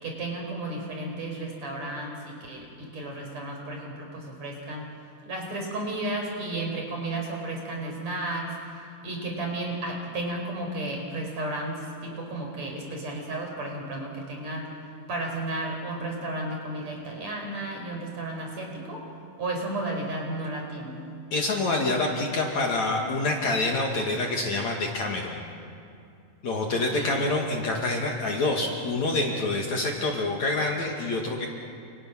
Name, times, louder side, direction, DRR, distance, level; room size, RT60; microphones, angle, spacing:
voice 1, 0.0-4.9 5.3-8.5 9.0-14.7 15.1-19.0 19.4-21.0 26.7-27.2, right 2 dB, 45° right, 1 dB, 5.9 m, -33 dB
voice 2, 21.3-25.4 26.4-31.5, left 2 dB, 50° left, 0 dB, 3.2 m, -27 dB
30.0 x 28.0 x 6.3 m, 2.5 s
omnidirectional pair, 4.6 m